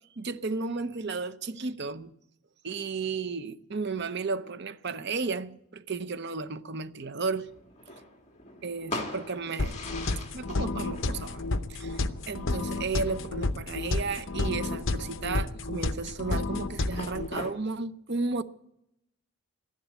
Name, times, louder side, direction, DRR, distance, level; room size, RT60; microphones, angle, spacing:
voice 1, 0.2-2.1 2.6-7.5 8.6-9.8 10.3-11.4 11.7-12.0 12.3-18.4, right 4 dB, 50° right, 0.8 m, -33 dB
Vuurwerk in de achtertuin, 7.5-17.5, left 2 dB, 30° left, 2.1 m, -43 dB
sound 1, 9.6-17.3, left 2 dB, 60° left, 0.8 m, -31 dB
14.0 x 11.5 x 8.5 m
head